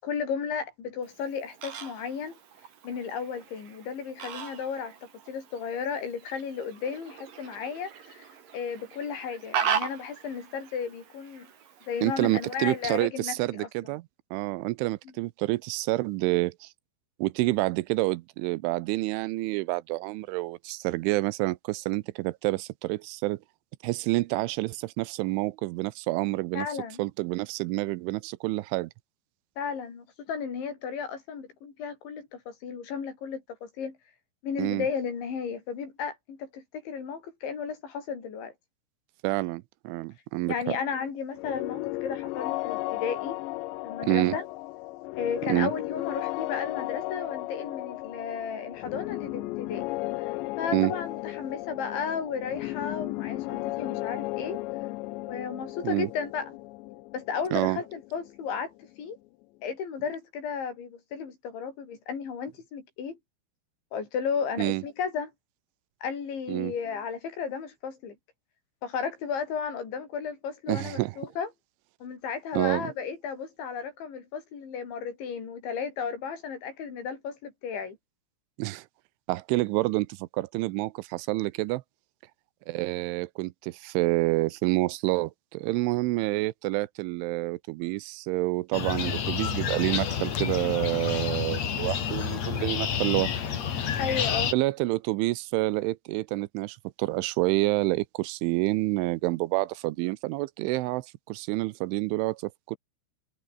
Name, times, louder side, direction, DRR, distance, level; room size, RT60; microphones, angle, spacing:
voice 1, 0.0-2.3 2.8-4.9 5.3-11.5 11.9-13.7 26.6-27.0 29.6-34.0 34.4-38.5 40.5-43.4 43.8-44.4 45.2-49.8 50.2-54.6 55.2-56.5 57.1-58.7 59.0-59.2 59.6-63.2 63.9-65.3 66.0-68.2 68.8-71.5 72.0-78.0 94.0-94.5, left 6 dB, 60° left, 7.7 m, -34 dB
Fowl, 1.0-13.0, right 8 dB, 45° right, 4.0 m, -38 dB
voice 2, 12.0-16.7 17.2-23.4 23.8-26.7 27.0-28.9 34.6-34.9 39.2-40.5 44.0-44.4 45.5-45.7 50.7-50.9 55.8-56.1 57.5-57.8 64.6-64.8 66.5-66.7 70.7-71.1 72.5-72.9 78.6-78.9 79.3-81.8 82.7-93.3 94.5-102.8, right 20 dB, 80° right, 2.9 m, -28 dB
sound 1, 41.4-59.0, left 20 dB, 85° left, 2.6 m, -35 dB
sound 2, 88.7-94.5, left 8 dB, 45° left, 2.4 m, -29 dB
omnidirectional pair, 5.9 m